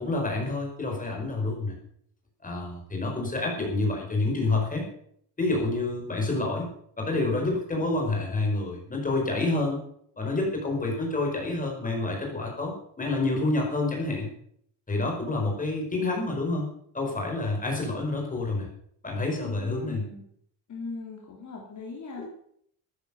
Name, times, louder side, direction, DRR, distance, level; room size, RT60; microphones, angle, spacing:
voice 1, 0.0-1.7 2.4-4.9 5.4-6.7 7.0-9.8 10.2-14.3 14.9-16.7 16.9-18.7 19.0-20.0 22.2-22.3, left 2 dB, 20° left, 1 dB, 5.0 m, -28 dB
voice 2, 19.4-20.2 20.7-22.3, left 4 dB, 40° left, -1 dB, 3.1 m, -39 dB
13.0 x 10.5 x 7.0 m, 0.67 s
cardioid pair, 150°, 43 cm